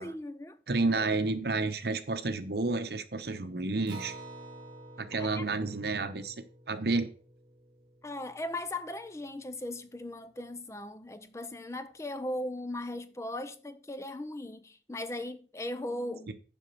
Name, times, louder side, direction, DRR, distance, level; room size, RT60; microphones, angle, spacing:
voice 1, 0.0-0.6 0.9-1.1 5.2-5.5 8.0-16.3, left 1 dB, 15° left, 0.4 m, -38 dB
voice 2, 0.7-4.1 5.0-6.3 6.7-7.1 16.3-16.4, right 3 dB, 65° right, 0.9 m, -30 dB
Acoustic guitar, 3.9-8.8, right 1 dB, 25° right, 1.5 m, -49 dB
7.2 x 5.1 x 6.9 m
head